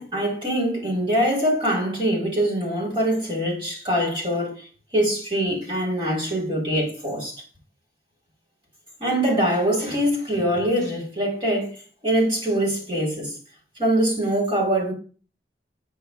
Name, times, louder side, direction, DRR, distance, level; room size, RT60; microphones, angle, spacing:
voice 1, 0.0-4.5 4.9-7.3 9.0-11.7 12.0-13.3 13.8-14.9, right 1 dB, 30° right, 6.7 m, -23 dB
10.5 x 10.0 x 3.7 m
head